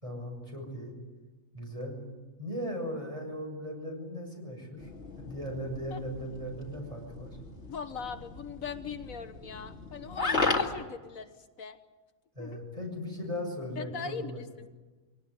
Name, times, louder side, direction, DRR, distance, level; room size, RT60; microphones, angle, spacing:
voice 1, 0.0-0.9 1.5-2.0 2.4-4.9 5.2-7.3 12.3-14.4, equal, 25° right, 0 dB, 6.6 m, -38 dB
sound 1, 4.8-10.8, left 3 dB, 55° left, 2.4 m, -35 dB
voice 2, 7.7-11.8 12.4-12.6 13.8-14.3 14.6-14.7, left 6 dB, 85° left, 8 dB, 1.7 m, -40 dB
24.0 x 18.0 x 9.7 m, 1.3 s
omnidirectional pair, 1.4 m